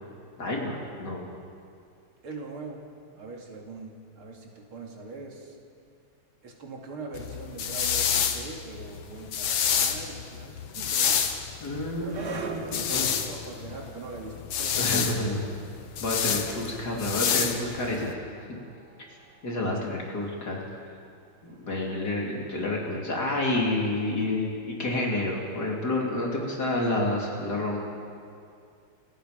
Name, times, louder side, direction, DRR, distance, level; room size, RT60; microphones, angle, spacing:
voice 1, 0.4-1.2 11.6-13.0 14.7-15.5 16.0-18.1 19.1-19.2 19.4-20.6 21.4-27.8, left 2 dB, 45° left, -2 dB, 3.7 m, -29 dB
voice 2, 2.2-2.8 3.1-5.6 6.4-11.3 12.0-12.3 12.7-15.0 19.9-20.1, right 3 dB, 75° right, 0 dB, 3.4 m, -41 dB
sound 1, 7.1-18.1, left 8 dB, 70° left, 1.9 m, -29 dB
sound 2, 11.5-22.0, right 3 dB, 55° right, 2.1 m, -45 dB
28.5 x 17.5 x 5.2 m, 2.4 s
omnidirectional pair, 2.3 m